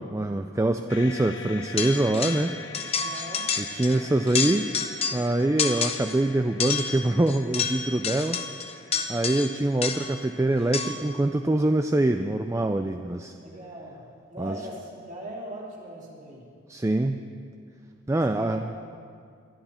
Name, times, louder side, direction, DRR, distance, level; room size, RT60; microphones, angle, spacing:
voice 1, 0.0-2.6 3.6-4.7 5.1-8.4 9.1-13.3 14.4-14.6 16.7-17.2 18.1-18.7, right 1 dB, 15° right, 7 dB, 0.3 m, -24 dB
sound 1, 0.9-11.1, left 4 dB, 60° left, 0.8 m, -45 dB
sound 2, 1.8-2.5 2.7-4.0 4.3-5.3 5.6-6.2 6.6-10.2 10.7-11.1, left 6 dB, 30° left, 0.8 m, -29 dB
voice 2, 2.9-3.5 3.8-4.1 4.5-4.6 13.4-16.5 18.3-18.9, right 1 dB, 35° right, -4 dB, 3.0 m, -40 dB
22.5 x 12.0 x 4.3 m, 2.3 s
head